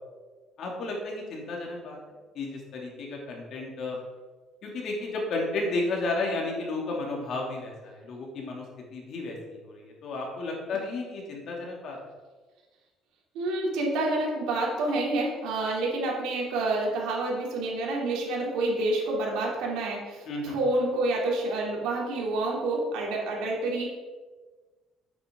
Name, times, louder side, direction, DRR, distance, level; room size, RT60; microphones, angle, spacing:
voice 1, 0.6-2.0 2.3-4.0 4.6-8.6 8.9-12.0 20.3-20.5, left 2 dB, 55° left, -1 dB, 2.6 m, -33 dB
voice 2, 13.3-23.9, right 2 dB, 80° right, -2 dB, 2.9 m, -28 dB
9.4 x 8.5 x 3.7 m, 1.3 s
cardioid pair, 135°, 0 cm